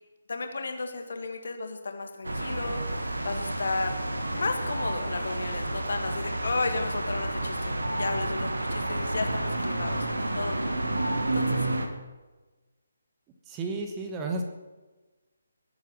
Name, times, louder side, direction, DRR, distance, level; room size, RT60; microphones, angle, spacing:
voice 1, 0.3-4.0 4.3-10.1 10.3-11.7, left 3 dB, 55° left, 5 dB, 2.0 m, -33 dB
sound 1, 2.2-11.9, right 1 dB, 70° right, 1.8 m, -30 dB
voice 2, 13.4-14.4, right 3 dB, 15° right, 3 dB, 1.4 m, -32 dB
20.5 x 8.7 x 6.0 m, 1.2 s
figure-of-eight pair, 145°, 0 cm